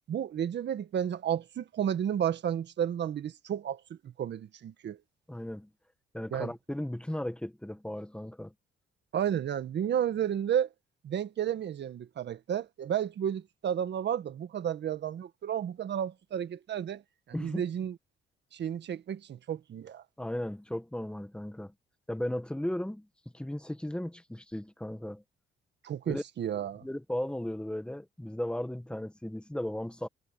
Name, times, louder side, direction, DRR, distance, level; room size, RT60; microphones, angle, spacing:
voice 1, 0.1-5.0 6.3-6.5 9.1-10.7 11.0-17.0 17.3-18.0 18.5-20.0 25.8-26.9, right 9 dB, 60° right, 1.7 m, -32 dB
voice 2, 5.3-5.7 6.1-8.5 17.3-17.6 20.2-21.7 22.1-23.1 23.3-25.2 26.1-26.2 26.8-30.1, left 1 dB, 5° left, 1.7 m, -36 dB
cardioid pair, 90°, 20 cm